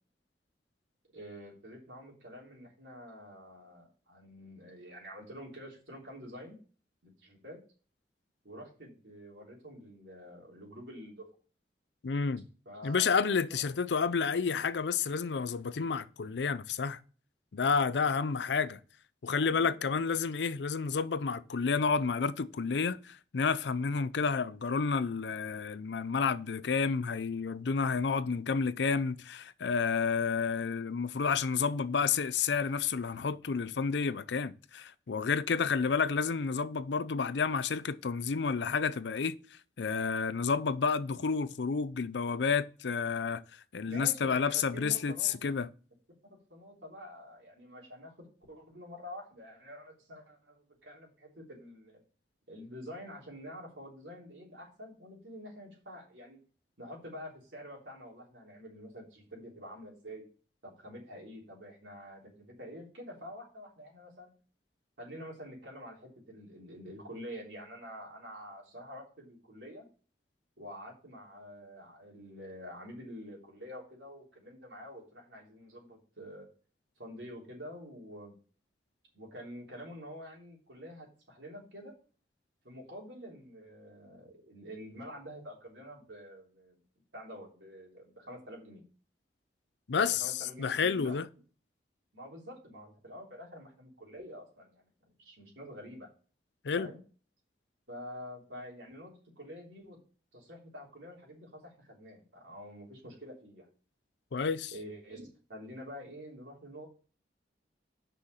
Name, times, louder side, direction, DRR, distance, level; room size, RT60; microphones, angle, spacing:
voice 1, 1.1-6.6 7.0-7.6 8.4-11.3 12.7-13.7 17.9-18.6 19.4-20.0 43.8-45.3 46.3-52.0 52.5-56.4 56.8-60.2 60.6-64.4 65.0-69.9 70.6-76.5 77.0-78.3 79.1-81.9 82.6-86.8 87.1-88.8 90.0-91.2 92.1-94.9 95.2-96.1 96.7-97.0 97.9-100.0 100.3-103.7 104.7-106.9, equal, 90° right, 3.7 m, -47 dB
voice 2, 12.0-12.5 12.8-17.0 17.5-18.8 19.2-39.4 39.8-43.4 43.7-45.7 89.9-91.3 96.6-96.9 104.3-104.7, left 5 dB, 80° left, 0.5 m, -30 dB
6.1 x 5.7 x 6.5 m
head